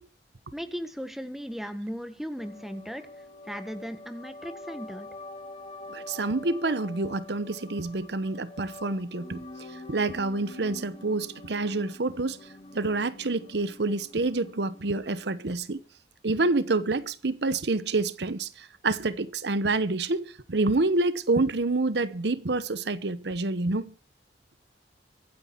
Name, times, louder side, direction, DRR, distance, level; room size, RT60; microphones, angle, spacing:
voice 1, 0.5-3.0 3.5-5.1, equal, ahead, 1.5 m, -37 dB
sound 1, 2.4-15.4, left 2 dB, 30° left, 2.8 m, -45 dB
voice 2, 5.9-12.4 12.7-15.8 16.2-23.9, right 3 dB, 75° right, 0.9 m, -28 dB
24.0 x 9.8 x 4.5 m
head